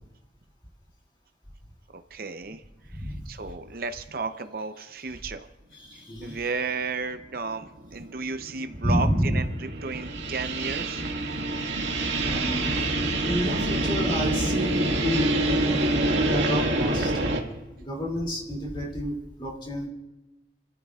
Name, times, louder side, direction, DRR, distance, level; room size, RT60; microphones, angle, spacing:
voice 1, 2.1-2.6 2.9-5.5 5.9-11.0, right 4 dB, 50° right, 8 dB, 0.7 m, -33 dB
voice 2, 2.9-3.3 5.7-6.4 8.8-9.4 12.1-12.8 13.2-17.1 17.8-19.9, equal, 25° left, -2 dB, 2.7 m, -29 dB
sound 1, 7.0-7.1 7.7-17.4, right 2 dB, 80° right, 2.0 m, -26 dB
29.5 x 14.0 x 2.4 m, 1.1 s
head